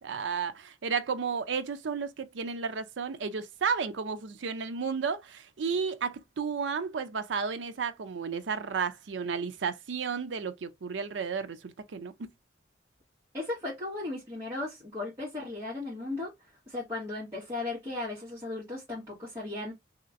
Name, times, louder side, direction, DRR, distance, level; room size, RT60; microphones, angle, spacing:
voice 1, 0.0-12.1, right 5 dB, 80° right, 0.5 m, -33 dB
voice 2, 13.3-19.7, left 2 dB, 15° right, 1.6 m, -36 dB
3.2 x 2.8 x 2.5 m
head